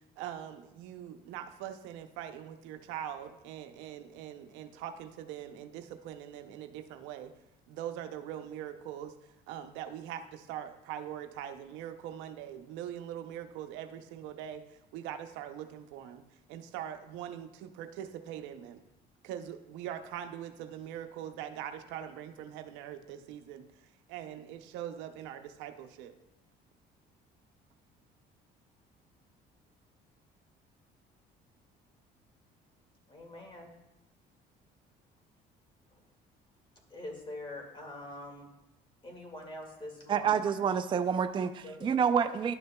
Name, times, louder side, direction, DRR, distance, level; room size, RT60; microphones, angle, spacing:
voice 1, 0.2-7.3 7.7-9.1 9.5-16.2 16.5-18.8 19.2-26.1, right 10 dB, 90° right, 8 dB, 0.6 m, -42 dB
voice 2, 33.1-33.7 35.9-36.0 36.9-38.5 39.0-40.4 41.6-41.9, left 1 dB, 25° left, 0 dB, 2.0 m, -44 dB
voice 3, 40.1-42.5, right 7 dB, 25° right, 8 dB, 0.3 m, -28 dB
11.5 x 6.6 x 2.2 m, 0.93 s
cardioid pair, 90°, 19 cm